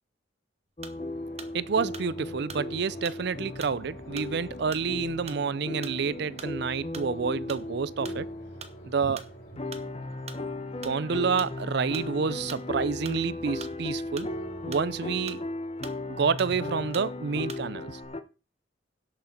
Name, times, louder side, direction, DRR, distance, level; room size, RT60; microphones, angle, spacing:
sound 1, 0.8-18.2, left 2 dB, 30° left, 1.0 m, -36 dB
sound 2, 0.8-1.1 1.4-1.6 1.9-2.7 3.0-3.3 3.6-3.8 4.2-4.3 4.7-4.9 5.3-5.5 5.8-6.0 6.4-6.6 6.9-7.2 7.5-7.7 8.0-8.2 8.6-8.8 9.2-9.3 9.7-9.9 10.3-10.5 10.8-11.0 11.4-11.6 11.9-12.1 12.5-12.7 13.1-13.2 13.6-14.3 14.7-14.9 15.3-15.5 15.8-16.1 16.4-16.6 16.9-17.1 17.5-17.7 17.9-18.1, right 6 dB, 35° right, 1.1 m, -44 dB
sound 3, 0.9-15.2, equal, 70° left, 4.1 m, -52 dB
voice 1, 1.5-8.3 8.8-9.3 10.8-14.3 14.6-15.4 16.1-18.0, right 5 dB, 55° right, 0.5 m, -29 dB
17.0 x 6.4 x 4.3 m
head